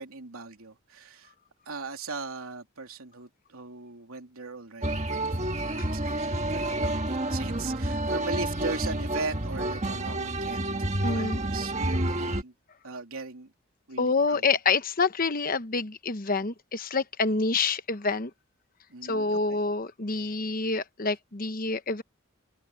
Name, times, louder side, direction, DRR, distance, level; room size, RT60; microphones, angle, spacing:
voice 1, 0.0-1.3 1.7-12.5 12.8-13.5 13.9-14.4 17.3-17.4 18.9-19.6, right 3 dB, 85° right, 2.9 m, -39 dB
sound 1, 4.8-12.4, right 1 dB, 35° right, 1.7 m, -29 dB
voice 2, 11.0-11.4 14.0-18.3 19.0-22.0, left 4 dB, 40° left, 1.0 m, -27 dB
open air
head